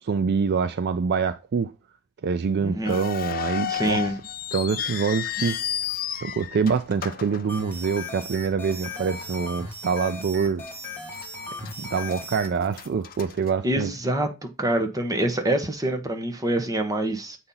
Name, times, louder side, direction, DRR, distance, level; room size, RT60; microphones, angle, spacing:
voice 1, 0.0-1.7 2.2-4.0 4.5-5.6 6.2-10.6 11.8-13.9, right 5 dB, 50° right, 0.4 m, -25 dB
voice 2, 2.6-3.0 3.7-4.1 13.6-14.3 14.6-17.4, right 1 dB, 15° right, 1.1 m, -25 dB
sound 1, 2.8-8.2 8.5-8.6 9.3-9.5 10.0-10.1 10.7-11.3 11.6-14.1, left 10 dB, 45° left, 0.7 m, -32 dB
sound 2, 7.5-12.5, left 2 dB, 10° left, 2.1 m, -37 dB
7.9 x 4.2 x 3.8 m
head